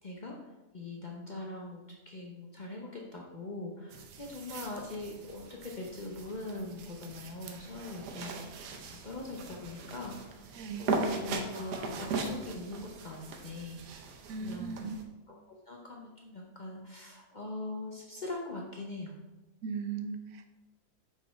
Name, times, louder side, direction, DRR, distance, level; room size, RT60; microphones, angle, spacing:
voice 1, 0.0-8.6 8.8-10.5 10.8-13.8 14.3-14.9 15.3-19.1, left 2 dB, 50° left, -1 dB, 0.5 m, -42 dB
sound 1, 3.9-15.0, right 3 dB, 90° right, 1.3 m, -39 dB
voice 2, 10.5-10.9 14.3-15.0 19.6-20.5, right 5 dB, 70° right, 8 dB, 1.0 m, -38 dB
5.7 x 4.5 x 4.4 m, 1.1 s
omnidirectional pair, 1.7 m